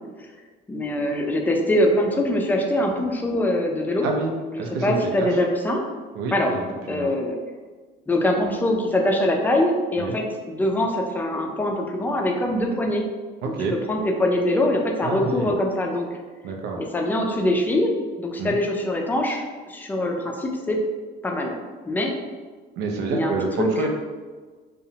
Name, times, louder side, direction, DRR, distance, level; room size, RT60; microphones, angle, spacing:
voice 1, 0.7-4.1 4.5-5.8 6.3-6.6 6.9-7.4 8.1-13.0 13.5-13.6 13.9-16.2 16.8-20.8 21.2-21.6 21.9-22.1 23.1-23.7, left 1 dB, 10° left, 1 dB, 0.3 m, -23 dB
voice 2, 4.0-4.3 4.6-5.3 6.2-7.1 10.0-10.1 13.4-13.7 15.0-15.5 16.4-16.9 18.4-18.5 22.8-23.9, right 4 dB, 90° right, 2 dB, 0.5 m, -28 dB
2.7 x 2.0 x 2.7 m, 1.4 s
cardioid pair, 110°, 17 cm